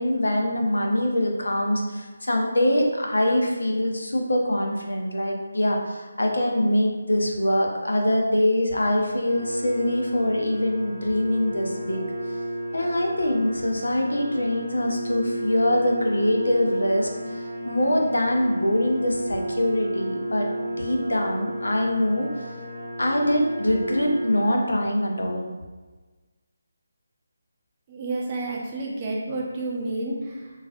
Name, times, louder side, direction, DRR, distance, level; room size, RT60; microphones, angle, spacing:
voice 1, 0.0-12.0 12.7-17.1 17.3-22.5 23.0-25.5, left 1 dB, 75° left, 1 dB, 0.6 m, -24 dB
sound 1, 9.2-24.4, equal, 10° right, 1.0 m, -33 dB
voice 2, 27.9-30.5, right 2 dB, 25° right, -3 dB, 0.6 m, -30 dB
4.0 x 2.4 x 2.4 m, 1.3 s
figure-of-eight pair, 155°, 0 cm